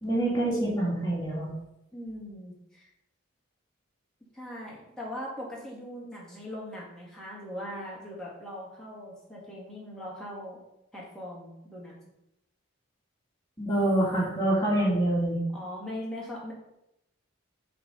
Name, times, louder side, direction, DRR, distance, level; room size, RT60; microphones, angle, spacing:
voice 1, 0.0-1.5 13.6-15.4, right 1 dB, 20° left, -6 dB, 2.4 m, -26 dB
voice 2, 1.9-2.9 4.3-10.6 10.9-12.0 15.5-16.5, equal, 5° left, -6 dB, 2.0 m, -40 dB
6.5 x 4.3 x 5.5 m, 0.84 s
head